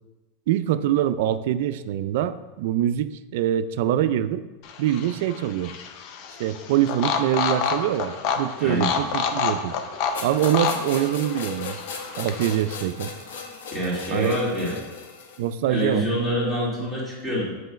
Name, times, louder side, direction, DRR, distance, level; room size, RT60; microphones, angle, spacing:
voice 1, 0.5-4.4 4.8-5.7 6.4-9.8 10.2-11.8 12.2-13.1 14.1-14.4 15.4-16.0, right 11 dB, 65° right, 13 dB, 0.3 m, -24 dB
sound 1, 4.6-12.8, left 6 dB, 50° left, 0.6 m, -29 dB
sound 2, 10.1-15.5, left 5 dB, 85° left, 0.9 m, -36 dB
voice 2, 13.7-14.8 15.7-17.4, equal, 5° left, -8 dB, 2.2 m, -26 dB
7.7 x 3.1 x 5.0 m, 1.1 s
supercardioid pair, 140°, 0 cm